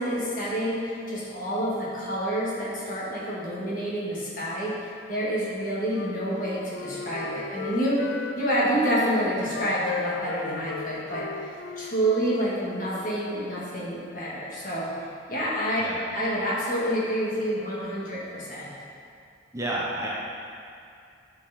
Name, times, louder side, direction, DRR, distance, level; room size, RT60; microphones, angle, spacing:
voice 1, 0.0-4.8 5.1-8.0 8.4-11.3 11.8-14.9 15.3-15.8 16.1-18.7, equal, 45° left, -7 dB, 2.0 m, -28 dB
Wind instrument woodwind instrument, 5.9-9.0 9.4-12.9, left 4 dB, 70° left, 0.4 m, -36 dB
voice 2, 19.5-20.1, right 1 dB, 15° right, -5 dB, 0.8 m, -30 dB
10.5 x 4.8 x 4.3 m, 2.5 s
head